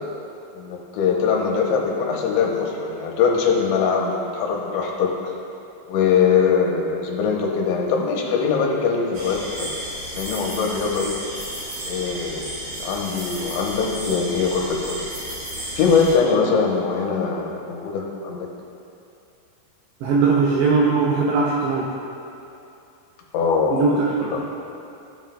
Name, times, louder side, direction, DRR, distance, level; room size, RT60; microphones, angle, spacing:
voice 1, 0.5-5.1 5.9-9.7 10.2-11.2 11.9-12.5 12.8-15.0 15.8-18.5 23.3-23.9 24.3-24.4, left 5 dB, 80° left, -1 dB, 3.0 m, -22 dB
sound 1, 9.1-16.1, right 1 dB, 55° right, 3.4 m, -33 dB
voice 2, 20.0-21.9 23.7-24.4, right 4 dB, 90° right, -4 dB, 2.4 m, -20 dB
16.0 x 7.3 x 2.3 m, 2.8 s
omnidirectional pair, 5.7 m